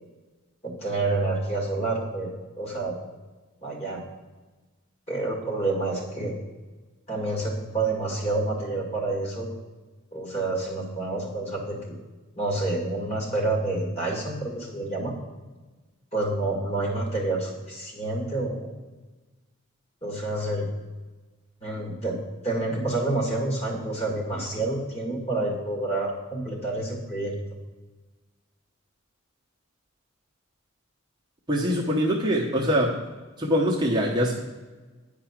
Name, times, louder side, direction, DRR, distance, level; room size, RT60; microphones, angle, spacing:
voice 1, 0.6-3.0 3.6-4.0 5.1-6.3 7.1-9.5 10.1-12.0 12.4-15.1 16.1-18.7 20.0-20.7 21.6-22.2 22.4-27.4, right 2 dB, 30° left, -1 dB, 2.0 m, -28 dB
voice 2, 31.5-33.0 33.4-34.3, equal, 20° right, -3 dB, 0.9 m, -23 dB
9.6 x 4.9 x 5.9 m, 1.3 s
head